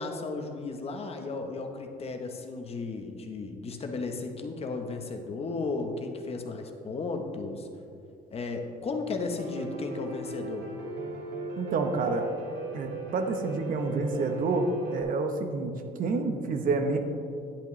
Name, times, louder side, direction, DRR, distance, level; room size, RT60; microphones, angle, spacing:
voice 1, 0.0-7.7 8.3-10.7, left 3 dB, 35° left, 4 dB, 0.9 m, -34 dB
Piano, 9.4-15.0, right 2 dB, 80° right, 1.3 m, -37 dB
voice 2, 11.6-12.2 12.7-17.0, right 3 dB, 55° right, 5 dB, 0.9 m, -28 dB
10.0 x 8.2 x 3.1 m, 2.5 s
cardioid pair, 110°, 17 cm